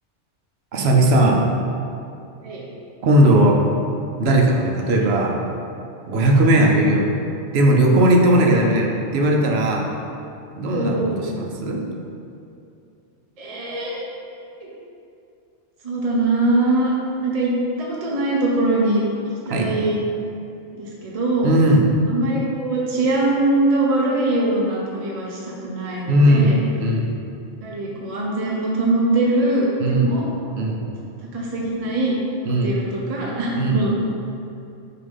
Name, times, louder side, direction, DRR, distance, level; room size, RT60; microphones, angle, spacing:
voice 1, 0.7-1.4 3.0-3.6 4.2-5.4 6.1-7.1 7.5-9.9 10.5-11.8 19.5-19.8 21.4-21.8 26.1-27.1 29.8-30.1 30.6-30.8 32.4-32.7 33.6-33.8, right 1 dB, 65° right, 1 dB, 0.9 m, -17 dB
voice 2, 10.6-11.2 13.4-14.1 14.6-14.7 15.8-17.5 17.8-19.0 19.5-20.0 20.7-21.5 22.1-25.4 25.6-26.6 27.6-30.2 31.3-32.1 32.6-33.9, right 2 dB, 40° right, -4 dB, 0.7 m, -22 dB
6.6 x 2.7 x 5.4 m, 2.6 s
omnidirectional pair, 1.2 m